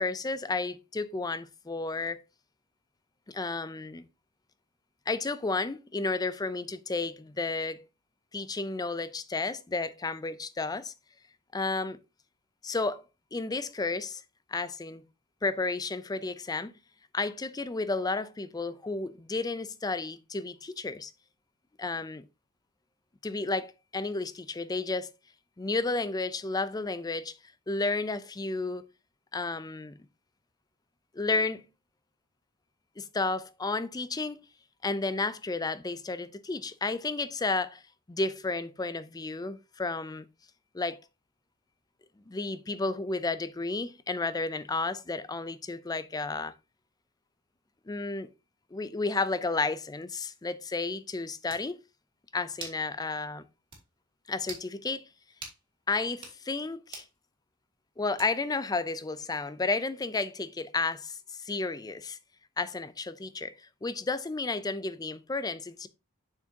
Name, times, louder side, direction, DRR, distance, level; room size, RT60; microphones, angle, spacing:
voice 1, 0.0-2.2 3.3-4.1 5.1-7.9 8.3-10.9 11.5-12.0 12.6-13.0 13.3-14.2 14.5-15.0 15.4-16.8 17.1-21.1 21.8-22.2 23.2-25.1 25.6-27.4 27.7-28.9 29.3-29.9 31.1-31.7 33.0-34.5 34.8-37.8 38.1-40.2 40.7-41.0 42.3-46.5 47.9-48.3 48.7-51.8 52.3-53.4 54.3-55.1 55.9-57.0 58.0-62.2 62.6-63.5 63.8-65.9, left 3 dB, 20° left, 0.4 m, -32 dB
sound 1, 51.0-51.1 51.5-51.7 52.6-52.8 53.2-53.3 53.7-53.8 54.4-54.7 55.4-55.6 56.1-56.4 56.9-57.1 58.2-58.5, right 4 dB, 25° right, 2.6 m, -43 dB
7.2 x 6.2 x 2.8 m
head